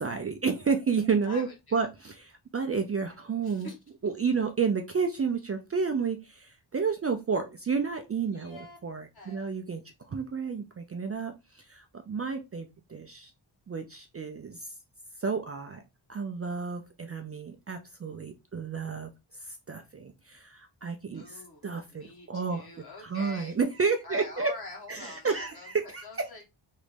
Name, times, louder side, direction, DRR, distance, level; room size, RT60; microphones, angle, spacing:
voice 1, 0.0-3.7 4.0-9.8 10.1-13.3 13.7-14.7 15.2-15.8 16.1-19.1 19.5-22.7 23.0-24.5 24.9-26.0, right 5 dB, 35° right, 0.4 m, -31 dB
voice 2, 1.2-1.9 3.4-3.8 8.3-8.8 9.1-9.5 21.1-23.6 24.0-26.4, left 3 dB, 50° left, 1.5 m, -46 dB
3.1 x 2.5 x 3.3 m
wide cardioid pair, 110°, 47 cm